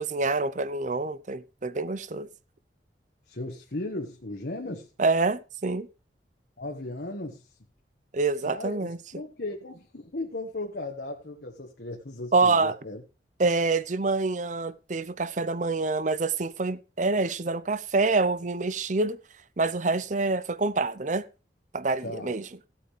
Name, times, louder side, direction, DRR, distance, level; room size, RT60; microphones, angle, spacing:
voice 1, 0.0-2.3 5.0-5.9 8.1-9.0 12.3-12.7 13.4-19.2 19.6-21.3 21.7-22.5, right 3 dB, 45° right, 0.7 m, -26 dB
voice 2, 3.3-4.9 6.6-7.6 8.4-13.0 22.0-22.3, left 2 dB, 65° left, 1.5 m, -36 dB
16.5 x 8.7 x 3.3 m
head